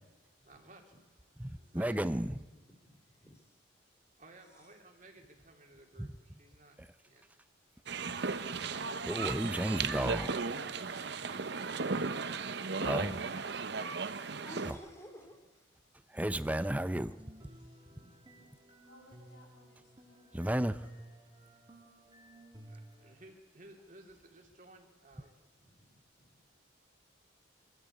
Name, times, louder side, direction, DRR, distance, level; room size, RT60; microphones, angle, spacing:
voice 1, 0.4-0.9 1.5-2.0 4.2-7.3 10.8-11.0 11.3-12.3 12.7-14.8 22.7-25.4, right 2 dB, 40° right, 2 dB, 2.9 m, -57 dB
voice 2, 1.4-2.4 6.0-6.1 6.8-6.9 9.0-10.4 12.8-13.2 14.7-14.8 16.1-17.2 20.3-20.8, right 1 dB, 10° right, 13 dB, 0.6 m, -33 dB
voice 3, 2.5-3.6 4.4-4.8 10.7-11.0 13.9-14.1 14.4-15.7 17.5-18.5 25.6-26.6, equal, 15° left, 4 dB, 3.1 m, -55 dB
sound 1, 7.9-14.7, right 4 dB, 60° right, 0.8 m, -36 dB
sound 2, 16.7-23.1, right 1 dB, 25° right, 1.7 m, -56 dB
voice 4, 18.8-20.9, equal, 70° left, -3 dB, 7.3 m, -63 dB
25.0 x 13.0 x 8.5 m, 1.2 s
head